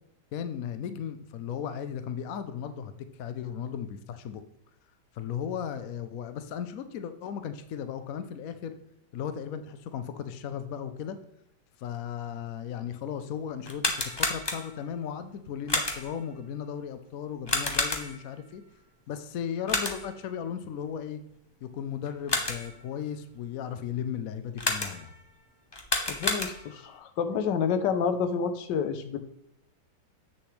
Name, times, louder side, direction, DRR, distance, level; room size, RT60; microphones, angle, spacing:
voice 1, 0.3-4.4 5.1-8.8 9.1-11.2 11.8-18.6 19.1-21.2 21.6-25.1, left 8 dB, 65° left, 10 dB, 1.0 m, -36 dB
sound 1, 13.6-14.9 15.7-16.2 17.5-18.3 19.7-20.2 22.0-22.8 24.6-25.2 25.7-26.9, left 2 dB, 20° left, 0.6 m, -30 dB
voice 2, 26.1-29.2, left 6 dB, 85° left, 10 dB, 1.4 m, -29 dB
8.0 x 6.6 x 3.2 m, 0.78 s
omnidirectional pair, 1.8 m